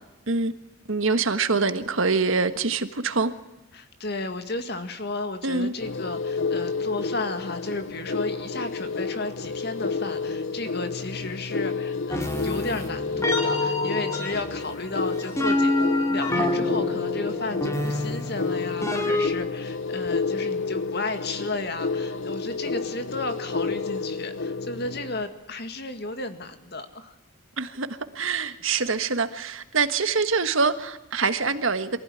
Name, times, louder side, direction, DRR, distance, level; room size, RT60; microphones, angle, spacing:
voice 1, 0.9-3.3 5.4-5.7 27.6-27.9 28.1-32.0, right 4 dB, 75° right, 1.5 m, -24 dB
voice 2, 3.7-27.1, left 2 dB, 50° left, 2.0 m, -33 dB
sound 1, 5.8-25.2, left 4 dB, 70° left, 0.8 m, -30 dB
sound 2, 12.1-19.3, left 2 dB, 15° left, 2.5 m, -27 dB
23.5 x 15.5 x 9.9 m
head